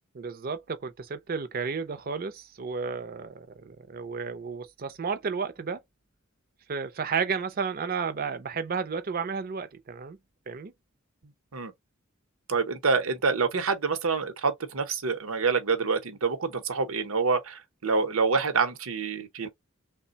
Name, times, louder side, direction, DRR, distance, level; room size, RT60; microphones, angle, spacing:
voice 1, 0.1-5.8 6.7-10.2 10.5-10.7, right 5 dB, 45° right, 0.5 m, -32 dB
voice 2, 12.5-19.5, right 4 dB, 80° right, 0.8 m, -27 dB
3.2 x 2.2 x 3.9 m
head